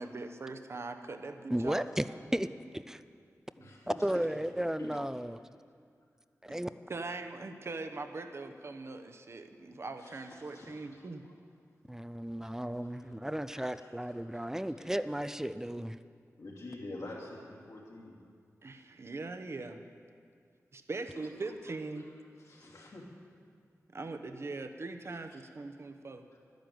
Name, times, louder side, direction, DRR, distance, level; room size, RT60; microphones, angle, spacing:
voice 1, 0.0-1.9 3.6-3.7 6.5-6.6 6.9-11.2 18.6-19.8 20.7-22.0 23.9-26.3, right 3 dB, 50° right, 7 dB, 0.9 m, -41 dB
voice 2, 1.5-3.0 4.0-5.4 6.4-6.7 11.9-16.0, right 1 dB, 10° right, 13 dB, 0.4 m, -34 dB
voice 3, 3.5-4.1 4.8-5.0 10.0-11.4 12.4-12.5 12.8-13.1 13.5-13.9 14.3-14.4 16.4-18.2 18.8-18.9 22.4-23.1 26.3-26.4, left 2 dB, 70° left, -3 dB, 3.0 m, -48 dB
11.5 x 10.5 x 7.8 m, 2.2 s
wide cardioid pair, 100°, 6 cm